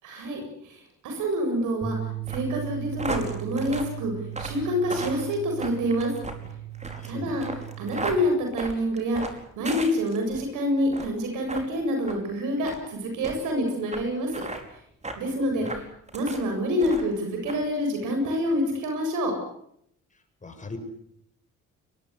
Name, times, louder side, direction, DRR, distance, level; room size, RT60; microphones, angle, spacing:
voice 1, 0.0-2.0 2.3-4.1 4.4-6.1 7.1-7.5 7.8-14.4 15.2-15.8 16.1-19.3, equal, 90° right, 3 dB, 7.7 m, -27 dB
sound 1, 1.8-8.1, right 13 dB, 45° right, 7.0 m, -37 dB
sound 2, 2.2-10.5 10.9-11.2 11.5-11.7 12.1-12.2 12.6-12.8 13.2-13.4 13.9-14.0 14.3-14.6 15.0-15.2 15.6-16.4 16.8-17.2 17.5-17.6, right 2 dB, 20° right, 5.1 m, -36 dB
voice 2, 6.9-7.4 15.2-15.7 20.4-20.8, left 3 dB, 25° left, 5 dB, 7.3 m, -41 dB
23.5 x 21.5 x 8.2 m, 0.70 s
cardioid pair, 90°, 30 cm